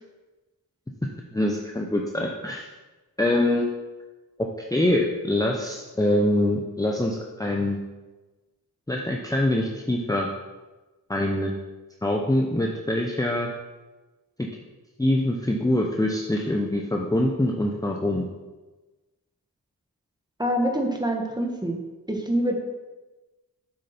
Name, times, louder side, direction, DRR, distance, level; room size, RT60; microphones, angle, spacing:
voice 1, 1.3-2.6 3.2-3.6 4.4-7.8 8.9-10.3 11.1-11.5 12.0-13.5 14.4-14.5 15.0-18.3, left 1 dB, 10° left, 0 dB, 0.8 m, -24 dB
voice 2, 20.4-21.8 22.1-22.5, right 1 dB, 10° right, 2 dB, 1.5 m, -25 dB
8.0 x 6.7 x 4.4 m, 1.2 s
cardioid pair, 65°, 37 cm